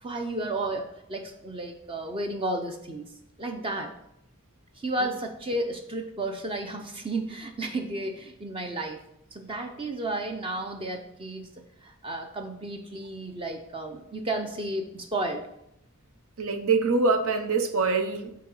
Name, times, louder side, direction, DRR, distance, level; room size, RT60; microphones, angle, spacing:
voice 1, 0.0-3.1 3.4-3.9 4.8-9.0 9.3-11.5 11.8-15.4, right 2 dB, 25° right, 4 dB, 0.5 m, -32 dB
voice 2, 16.4-18.4, right 4 dB, 75° right, 7 dB, 0.8 m, -25 dB
8.5 x 2.9 x 5.4 m, 0.80 s
head